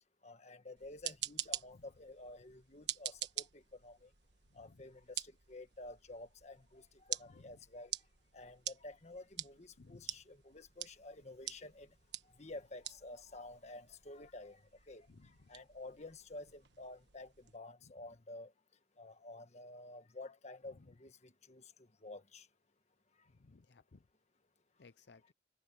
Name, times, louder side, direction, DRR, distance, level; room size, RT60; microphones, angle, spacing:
voice 1, 0.2-4.1 4.5-7.9 8.3-11.9 12.3-18.5 19.0-22.5, left 2 dB, 40° left, 1.6 m, -51 dB
sound 1, 0.8-17.6, right 12 dB, 80° right, 1.3 m, -47 dB
voice 2, 9.8-10.2 15.1-15.3 23.4-24.0 24.8-25.3, left 3 dB, 70° left, 0.7 m, -60 dB
head